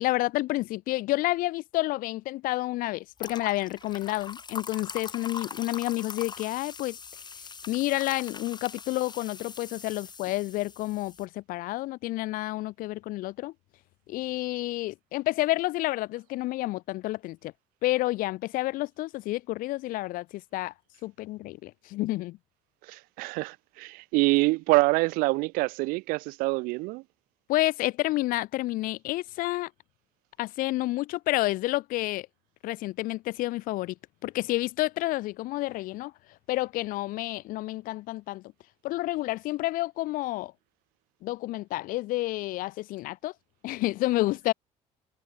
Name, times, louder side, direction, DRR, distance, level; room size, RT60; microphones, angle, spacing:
voice 1, 0.0-7.0 7.7-13.5 14.1-17.5 17.8-20.7 21.0-22.4 27.5-29.7 30.4-32.3 32.6-33.9 34.2-36.1 36.5-38.5 38.8-40.5 41.2-43.3 43.6-44.5, left 18 dB, 75° left, 1.4 m, -29 dB
sound 1, 3.2-11.3, left 5 dB, 30° left, 3.0 m, -42 dB
voice 2, 22.8-27.0, right 24 dB, 90° right, 2.0 m, -26 dB
cardioid pair, 100°, 14 cm